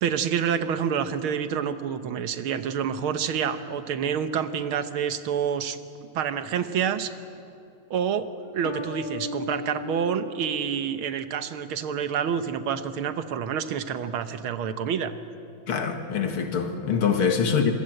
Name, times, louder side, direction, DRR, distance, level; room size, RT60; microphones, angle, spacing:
voice 1, 0.0-5.8 6.1-7.1 7.9-15.1, right 7 dB, 75° right, 10 dB, 1.9 m, -28 dB
sound 1, 8.6-11.3, left 3 dB, 50° left, 1.6 m, -37 dB
voice 2, 15.7-17.7, left 6 dB, 80° left, 6 dB, 2.7 m, -24 dB
26.5 x 22.5 x 7.8 m, 2.7 s
omnidirectional pair, 2.3 m